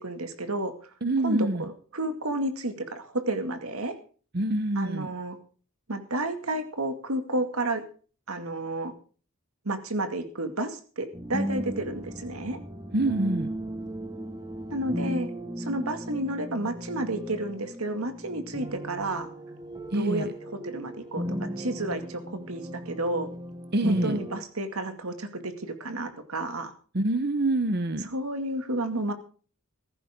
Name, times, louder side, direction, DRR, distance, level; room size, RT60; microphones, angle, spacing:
voice 1, 0.0-0.7 1.2-3.9 4.8-5.4 5.9-7.8 8.3-8.9 9.6-12.6 14.7-15.3 15.6-19.3 19.9-23.3 23.8-26.7 28.1-29.1, right 1 dB, 85° right, 8 dB, 2.3 m, -31 dB
voice 2, 1.0-1.6 4.3-5.1 12.9-13.5 19.9-20.3 23.7-24.2 26.9-28.1, right 1 dB, 50° right, 10 dB, 1.0 m, -26 dB
sound 1, 11.1-24.4, equal, 20° right, 1.4 m, -36 dB
15.5 x 14.5 x 3.7 m, 0.40 s
head